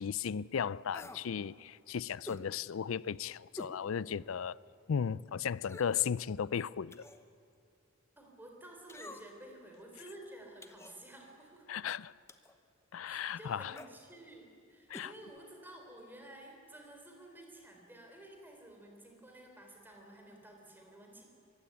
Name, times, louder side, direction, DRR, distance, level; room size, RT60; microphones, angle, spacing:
voice 1, 0.0-4.6 4.9-7.0 11.7-12.1 12.9-13.7 14.9-15.1, left 7 dB, 85° left, 0.4 m, -35 dB
sound 1, 0.9-1.3 2.3-2.5 3.6-3.8 4.3-4.4 5.6-6.0 6.9-7.3 8.9-9.5 10.6-11.0 12.3-12.6 13.7-13.9 14.9-15.1 15.4-15.5, left 1 dB, 15° left, 1.0 m, -48 dB
voice 2, 8.2-11.7 13.0-21.2, right 1 dB, 10° right, 4.0 m, -52 dB
24.0 x 15.5 x 9.5 m
head